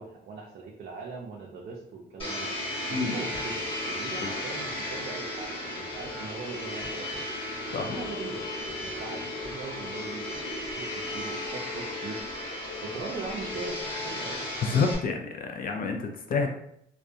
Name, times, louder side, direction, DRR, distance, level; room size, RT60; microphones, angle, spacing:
voice 1, 0.0-2.5 2.9-7.2 7.8-8.5 8.8-10.3 10.6-12.2 12.8-14.4, right 4 dB, 50° right, -1 dB, 0.4 m, -40 dB
Domestic sounds home sounds, 2.2-14.9, left 1 dB, 25° left, 1.3 m, -35 dB
voice 2, 14.6-16.5, left 5 dB, 45° left, 4 dB, 0.4 m, -28 dB
2.3 x 2.2 x 2.6 m, 0.72 s
cardioid pair, 90°, 20 cm